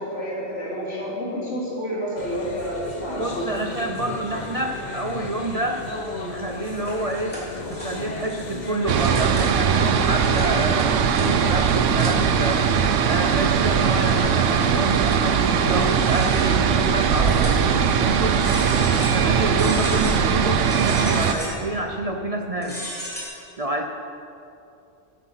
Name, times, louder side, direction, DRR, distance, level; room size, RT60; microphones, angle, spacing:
voice 1, 0.0-3.5, equal, 75° left, -6 dB, 3.4 m, -29 dB
sound 1, 2.2-9.1, left 2 dB, 40° left, 1.2 m, -35 dB
voice 2, 3.2-5.8 6.2-7.4 7.7-12.7 13.1-18.4 18.9-22.8 23.6-23.9, right 1 dB, 40° right, 3 dB, 0.6 m, -28 dB
sound 2, 6.6-8.4 8.8-9.8 10.2-10.8 11.1-11.3 11.6-12.6 13.1-13.2 13.6-14.2 14.6-16.7 17.3-17.8 18.3-19.2 19.6-20.2 20.6-21.7 22.5-23.2, equal, 10° left, 3.0 m, -36 dB
sound 3, 8.9-21.3, right 7 dB, 85° right, 1.1 m, -20 dB
11.0 x 10.0 x 5.8 m, 2.7 s
omnidirectional pair, 1.2 m